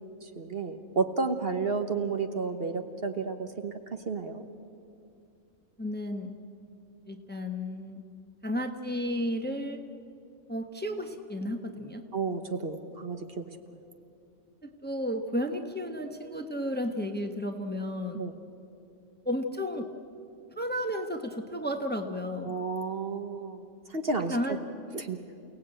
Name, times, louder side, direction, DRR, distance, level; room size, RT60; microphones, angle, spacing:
voice 1, 0.2-4.4 12.1-13.5 18.1-18.3 22.4-23.6 23.9-24.4 24.9-25.2, right 4 dB, 50° right, 6 dB, 1.3 m, -32 dB
voice 2, 5.8-6.3 7.1-8.0 8.4-9.8 10.5-12.0 14.6-18.2 19.2-19.9 20.6-22.6 24.3-24.6, equal, 10° left, 6 dB, 1.1 m, -33 dB
29.0 x 17.5 x 8.9 m, 2.6 s
omnidirectional pair, 1.4 m